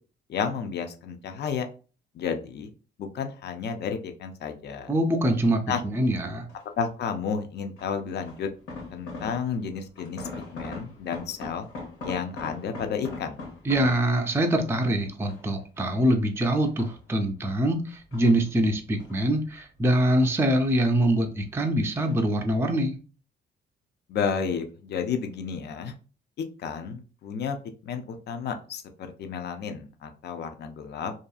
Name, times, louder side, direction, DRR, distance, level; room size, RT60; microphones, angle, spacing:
voice 1, 0.3-1.7 2.2-2.7 3.0-4.9 5.7-5.8 6.8-8.5 8.9-11.7 12.0-13.4 24.1-25.9 26.4-27.6 27.8-31.1, left 6 dB, 55° left, 7 dB, 0.5 m, -32 dB
voice 2, 4.9-6.5 13.6-23.0, right 1 dB, 10° right, 3 dB, 0.4 m, -24 dB
sound 1, 6.5-6.9 7.8-9.7 10.0-14.7 15.2-16.1 16.5-17.4 17.9-19.2 19.5-20.7 20.9-21.5 22.0-22.3 22.6-22.7, left 3 dB, 90° left, 1.0 m, -41 dB
2.7 x 2.4 x 2.3 m, 0.36 s
cardioid pair, 90°, 20 cm